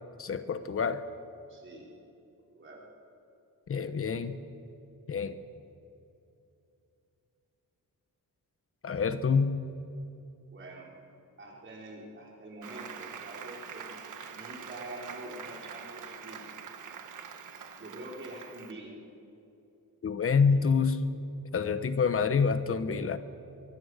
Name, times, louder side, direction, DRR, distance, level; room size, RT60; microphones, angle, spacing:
voice 1, 0.2-1.0 3.7-4.4 5.1-5.4 8.8-9.5 20.0-21.0 21.5-23.2, left 5 dB, 40° left, 11 dB, 1.1 m, -27 dB
voice 2, 1.5-1.9 2.5-2.8 10.5-10.9 11.4-16.4 17.5-19.0 20.4-20.7, right 1 dB, 35° right, -3 dB, 4.9 m, -46 dB
Applause, 12.6-18.7, right 7 dB, 65° right, 1.6 m, -44 dB
24.5 x 22.5 x 6.6 m, 2.8 s
wide cardioid pair, 165°, 34 cm